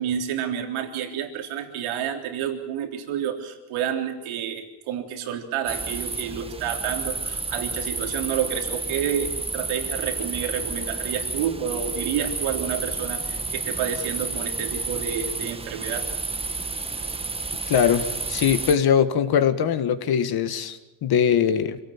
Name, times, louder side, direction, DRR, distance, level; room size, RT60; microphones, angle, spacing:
voice 1, 0.0-16.1, right 8 dB, 90° right, 4 dB, 3.7 m, -29 dB
sound 1, 5.7-18.8, right 3 dB, 10° right, 1.1 m, -31 dB
voice 2, 17.7-21.8, left 8 dB, 50° left, 10 dB, 1.8 m, -21 dB
25.5 x 18.0 x 7.3 m, 1.1 s
cardioid pair, 150°, 48 cm